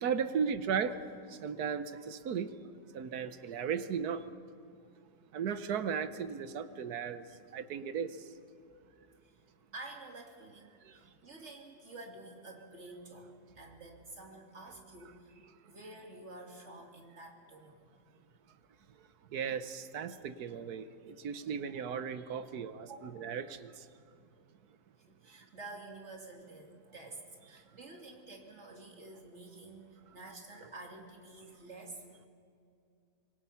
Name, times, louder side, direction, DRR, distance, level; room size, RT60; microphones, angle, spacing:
voice 1, 0.0-1.0 1.4-2.5 2.9-4.2 5.3-7.2 7.5-8.1 19.3-23.7, right 7 dB, 70° right, 13 dB, 1.4 m, -35 dB
voice 2, 9.7-15.3 15.7-17.9 22.8-23.1 25.1-32.1, right 2 dB, 40° right, 2 dB, 3.0 m, -50 dB
26.5 x 22.0 x 5.7 m, 2.5 s
omnidirectional pair, 1.8 m